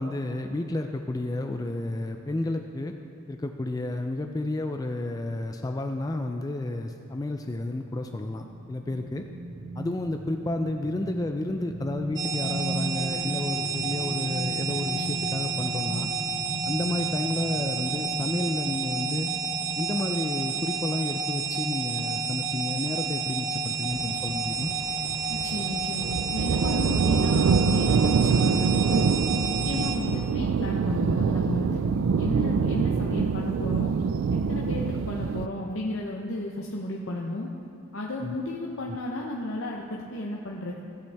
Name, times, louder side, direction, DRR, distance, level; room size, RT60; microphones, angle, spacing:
voice 1, 0.0-2.9 3.3-9.3 9.8-16.1 16.7-19.3 19.8-24.7 29.7-29.9 38.2-38.4 38.9-39.0, left 2 dB, 15° left, 5 dB, 0.3 m, -31 dB
sound 1, 8.1-20.5 20.9-21.1, right 1 dB, 85° right, 1.2 m, -38 dB
sound 2, 12.2-30.0, right 5 dB, 20° right, 0.7 m, -30 dB
sound 3, 23.9-35.5, right 5 dB, 70° right, 0.3 m, -25 dB
voice 2, 25.3-31.8 32.2-33.9 34.3-37.5 37.9-40.8, left 1 dB, 65° left, -2 dB, 0.8 m, -33 dB
16.5 x 8.0 x 3.4 m, 2.6 s
head